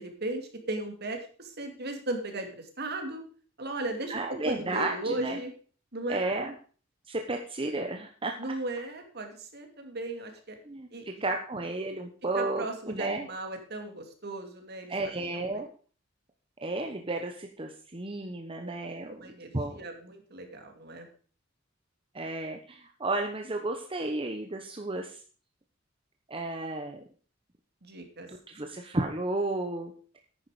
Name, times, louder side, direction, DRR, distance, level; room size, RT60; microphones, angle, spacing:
voice 1, 0.0-3.2 3.6-5.5 5.9-6.2 8.4-10.5 10.9-11.1 12.3-15.4 18.8-21.1 27.8-28.3, right 2 dB, 55° right, 4 dB, 2.5 m, -37 dB
voice 2, 4.1-5.4 6.1-6.5 7.1-8.3 10.6-13.3 14.9-15.7 16.6-19.8 22.1-25.2 26.3-27.0 28.3-29.9, right 2 dB, 30° right, 3 dB, 1.1 m, -33 dB
10.5 x 9.6 x 5.0 m, 0.41 s
head